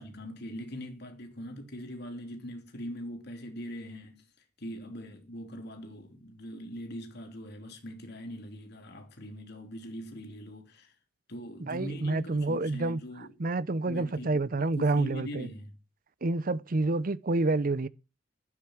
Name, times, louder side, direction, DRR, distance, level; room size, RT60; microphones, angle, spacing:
voice 1, 0.0-4.2 4.6-10.9 11.3-13.3 13.9-15.7, equal, 60° left, 3.3 m, -41 dB
voice 2, 11.6-15.5 16.2-17.9, right 2 dB, 50° right, 0.7 m, -28 dB
12.0 x 9.7 x 5.9 m
head